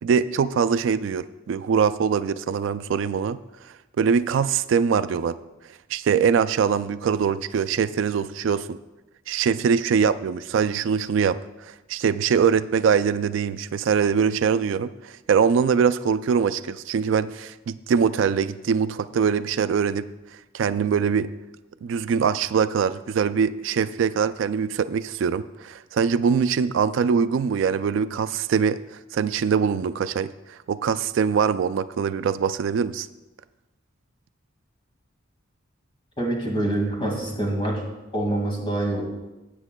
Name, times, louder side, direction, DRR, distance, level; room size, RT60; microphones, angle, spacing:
voice 1, 0.0-3.4 4.0-5.4 5.9-8.8 9.3-11.4 11.7-20.0 20.5-21.3 21.8-28.8 29.1-33.1, right 6 dB, 75° right, 13 dB, 0.3 m, -23 dB
voice 2, 36.2-37.8 38.1-39.0, right 1 dB, 25° left, 0 dB, 2.0 m, -25 dB
16.0 x 8.0 x 2.2 m, 1.0 s
head